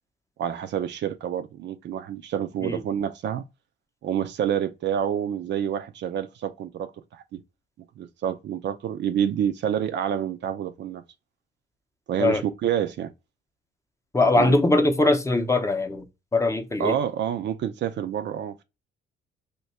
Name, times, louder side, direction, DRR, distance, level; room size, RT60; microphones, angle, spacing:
voice 1, 0.4-3.4 4.0-7.4 8.0-11.0 12.1-13.1 14.4-14.6 16.8-18.6, right 9 dB, 60° right, 0.5 m, -28 dB
voice 2, 14.1-16.1 16.3-16.9, left 2 dB, 15° left, 0.6 m, -21 dB
2.8 x 2.2 x 4.1 m
cardioid pair, 90°, 20 cm